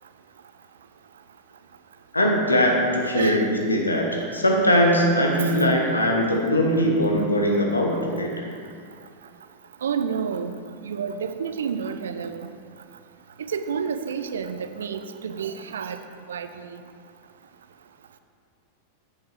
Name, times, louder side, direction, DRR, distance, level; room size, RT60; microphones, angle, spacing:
voice 1, 2.1-8.3, equal, 80° left, 0 dB, 1.1 m, -21 dB
voice 2, 3.1-3.6 7.9-8.0 9.8-10.6 10.8-12.5 13.5-16.0 16.3-16.8, right 6 dB, 65° right, 10 dB, 0.4 m, -30 dB
8.6 x 5.5 x 4.8 m, 2.3 s
figure-of-eight pair, 90°, 0 cm